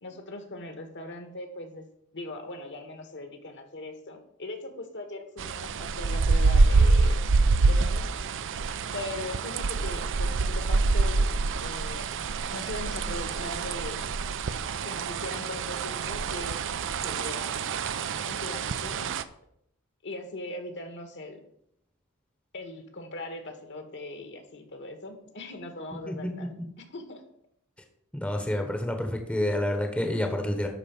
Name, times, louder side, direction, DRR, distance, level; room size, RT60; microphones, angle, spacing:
voice 1, 0.0-1.8 2.1-7.2 7.6-8.1 8.9-11.3 11.6-12.1 12.5-14.1 14.8-17.7 18.2-19.2 20.0-21.4 22.5-26.5 26.8-27.2, left 2 dB, 55° left, 6 dB, 1.6 m, -40 dB
sound 1, 5.4-19.2, right 3 dB, 60° right, 0.6 m, -26 dB
voice 2, 28.1-30.7, left 1 dB, 5° left, 4 dB, 1.1 m, -28 dB
11.0 x 4.3 x 7.0 m, 0.71 s
head